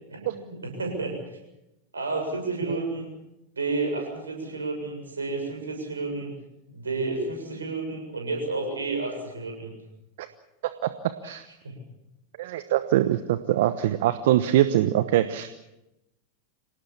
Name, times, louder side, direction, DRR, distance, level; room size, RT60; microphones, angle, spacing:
voice 1, 0.1-1.2 1.9-3.1 3.6-6.4 6.7-9.7 11.2-11.4 11.6-11.8, right 3 dB, 85° right, 3 dB, 7.3 m, -31 dB
voice 2, 12.4-15.5, right 13 dB, 60° right, 12 dB, 1.1 m, -23 dB
26.5 x 18.0 x 7.4 m, 0.93 s
figure-of-eight pair, 90°, 0 cm